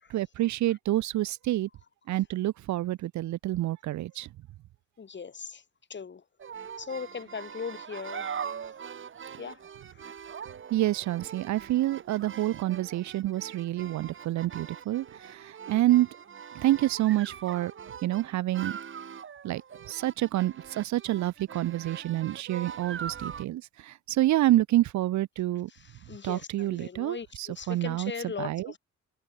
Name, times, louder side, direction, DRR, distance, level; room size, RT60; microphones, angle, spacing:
voice 1, 0.1-1.7 2.1-4.3 10.7-16.1 16.5-17.7 18.0-18.8 19.4-19.6 19.9-25.7 26.2-28.1 28.4-28.7, right 15 dB, 70° right, 0.6 m, -28 dB
voice 2, 5.0-5.6 5.9-6.2 6.8-8.3 8.6-8.7 9.4-9.6 9.9-10.2 25.7-28.8, left 6 dB, 35° left, 3.2 m, -39 dB
sound 1, 6.4-23.4, right 7 dB, 40° right, 1.5 m, -42 dB
cardioid pair, 90°, 30 cm